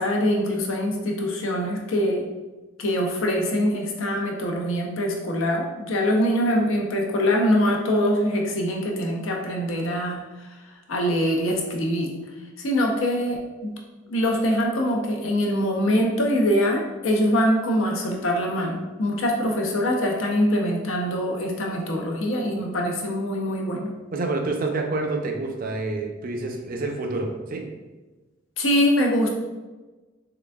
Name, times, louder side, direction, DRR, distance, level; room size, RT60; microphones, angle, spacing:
voice 1, 0.0-2.3 2.8-10.2 10.9-12.1 12.6-13.7 14.1-23.9 28.6-29.3, equal, 90° left, 0 dB, 0.7 m, -23 dB
voice 2, 24.1-27.6, right 3 dB, 45° right, 2 dB, 0.5 m, -28 dB
3.8 x 3.3 x 2.3 m, 1.2 s
head